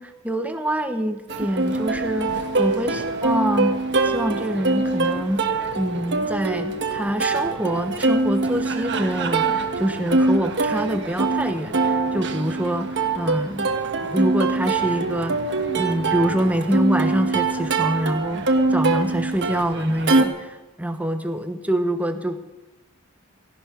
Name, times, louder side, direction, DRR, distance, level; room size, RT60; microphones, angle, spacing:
voice 1, 0.0-3.8 4.0-5.5 5.7-13.7 14.1-15.4 15.7-22.5, right 1 dB, 5° right, 6 dB, 1.1 m, -25 dB
Plucked string instrument, 1.3-20.2, right 3 dB, 55° right, 1.4 m, -23 dB
17.5 x 14.5 x 5.2 m, 1.0 s
head